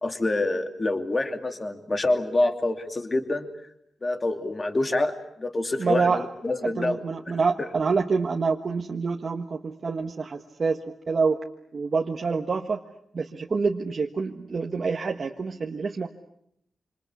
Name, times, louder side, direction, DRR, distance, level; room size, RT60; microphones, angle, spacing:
voice 1, 0.0-3.4 4.0-7.0 7.6-7.7, left 2 dB, 25° left, 6 dB, 2.6 m, -26 dB
voice 2, 5.8-6.2 6.8-10.8 11.1-11.4 11.7-12.8 13.1-16.1, right 4 dB, 45° right, 2 dB, 1.4 m, -26 dB
27.0 x 27.0 x 8.3 m, 0.76 s
wide cardioid pair, 130°, 0 cm